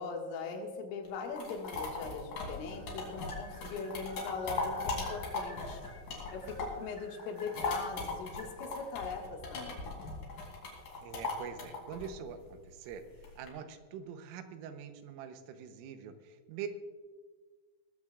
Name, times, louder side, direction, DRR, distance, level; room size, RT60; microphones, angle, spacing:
voice 1, 0.0-5.8 6.3-9.9, left 4 dB, 90° left, 1 dB, 4.2 m, -40 dB
sound 1, 1.0-6.9 7.2-13.5, left 3 dB, 50° left, 3.9 m, -38 dB
sound 2, 2.7-9.0, left 1 dB, 20° left, 0.8 m, -55 dB
voice 2, 11.0-13.0 13.4-16.7, right 7 dB, 90° right, 8 dB, 3.6 m, -44 dB
19.5 x 15.0 x 2.5 m, 1.5 s
omnidirectional pair, 5.6 m